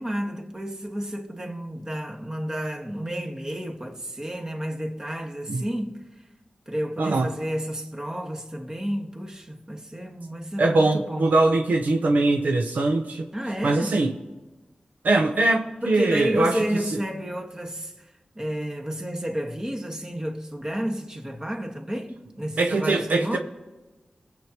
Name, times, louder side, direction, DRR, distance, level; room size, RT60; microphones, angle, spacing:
voice 1, 0.0-6.2 6.7-11.3 13.3-14.0 15.8-23.4, equal, 25° right, 1.5 m, -31 dB
voice 2, 7.0-7.3 10.6-13.3 13.6-14.1 15.0-16.6 22.6-23.4, right 2 dB, 85° right, 0.8 m, -22 dB
21.0 x 7.7 x 3.0 m
cardioid pair, 50°, 3 cm